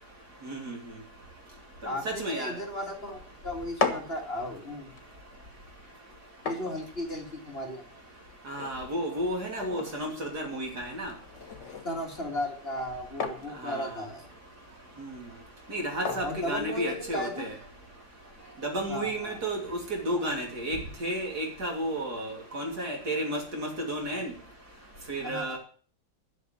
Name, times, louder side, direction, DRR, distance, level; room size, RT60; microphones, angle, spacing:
voice 1, 0.4-0.8 1.8-2.5 8.5-11.1 13.6-13.9 15.0-15.1 15.7-17.5 18.6-24.3 25.1-25.6, right 1 dB, 55° right, 1 dB, 3.7 m, -32 dB
voice 2, 1.8-4.9 6.4-7.9 11.8-14.3 16.1-17.5 18.9-19.4 25.2-25.6, left 1 dB, 30° left, 1 dB, 2.5 m, -35 dB
sound 1, 3.5-17.4, left 5 dB, 65° left, 2.1 m, -39 dB
12.0 x 6.4 x 9.3 m, 0.43 s
omnidirectional pair, 2.0 m